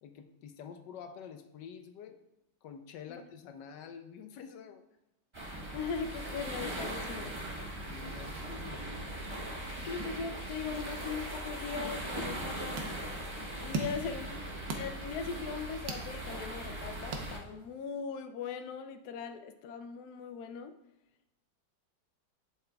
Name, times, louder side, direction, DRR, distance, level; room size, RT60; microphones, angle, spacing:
voice 1, 0.0-2.2 2.6-4.8 7.9-9.0 14.2-14.3, left 7 dB, 85° left, 7 dB, 1.3 m, -48 dB
sound 1, 5.3-17.4, right 1 dB, 25° right, 0.6 m, -40 dB
voice 2, 5.7-7.3 9.9-12.9 13.6-14.4 14.7-20.7, left 6 dB, 70° left, 8 dB, 1.0 m, -39 dB
sound 2, 12.3-17.9, right 4 dB, 85° right, 1.5 m, -42 dB
11.0 x 6.0 x 2.3 m, 0.89 s
omnidirectional pair, 1.9 m